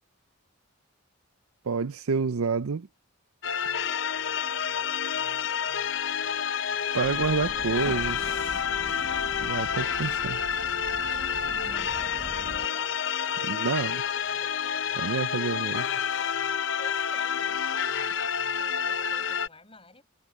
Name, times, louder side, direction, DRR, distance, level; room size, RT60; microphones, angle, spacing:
voice 1, 1.6-2.9 6.9-8.6 9.4-10.4 13.5-14.0 15.0-15.9, right 5 dB, 80° right, 0.5 m, -28 dB
sound 1, 3.4-19.5, left 7 dB, 55° left, 0.6 m, -29 dB
Truck, 7.0-12.7, equal, 5° right, 0.9 m, -42 dB
voice 2, 11.3-11.9 12.3-13.4 13.8-14.0 14.4-14.5 16.4-17.7 18.5-20.0, left 3 dB, 25° left, 6.8 m, -51 dB
head